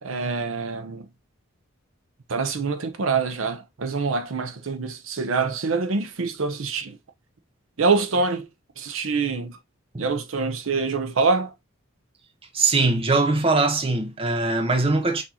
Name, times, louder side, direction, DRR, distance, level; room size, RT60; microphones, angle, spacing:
voice 1, 0.0-1.1 2.3-7.0 7.8-8.5 8.8-9.6 10.0-11.5, right 4 dB, 70° right, 0.6 m, -25 dB
voice 2, 12.5-15.2, right 3 dB, 25° right, 0.7 m, -21 dB
6.0 x 2.7 x 2.9 m
head